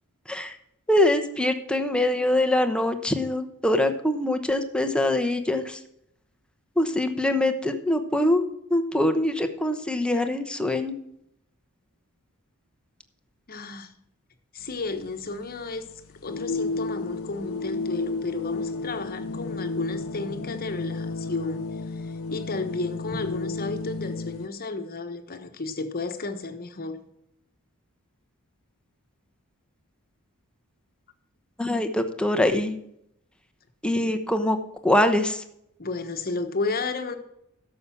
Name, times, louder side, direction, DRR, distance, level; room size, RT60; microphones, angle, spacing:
voice 1, 0.9-5.8 6.8-8.4 8.7-10.9 31.6-32.8 33.8-34.6 34.8-35.4, left 1 dB, 5° left, 7 dB, 1.0 m, -23 dB
voice 2, 13.5-13.9 14.5-15.9 16.2-21.7 22.0-27.0 35.8-37.2, left 3 dB, 45° left, 8 dB, 1.3 m, -33 dB
sound 1, 14.6-24.5, left 3 dB, 65° left, 0.6 m, -32 dB
11.5 x 7.0 x 5.9 m, 0.74 s
head